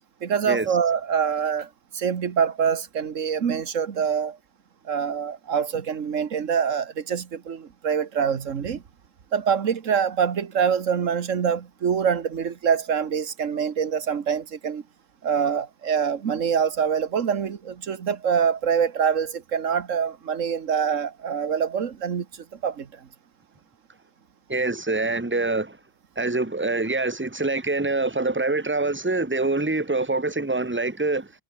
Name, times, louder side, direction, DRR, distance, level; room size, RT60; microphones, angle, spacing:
voice 1, 0.2-4.4 4.8-8.8 9.3-14.8 15.2-22.3 22.6-23.1, right 7 dB, 90° right, 1.7 m, -25 dB
voice 2, 24.5-25.8 26.1-31.3, right 2 dB, 10° right, 1.6 m, -25 dB
omnidirectional pair, 1.3 m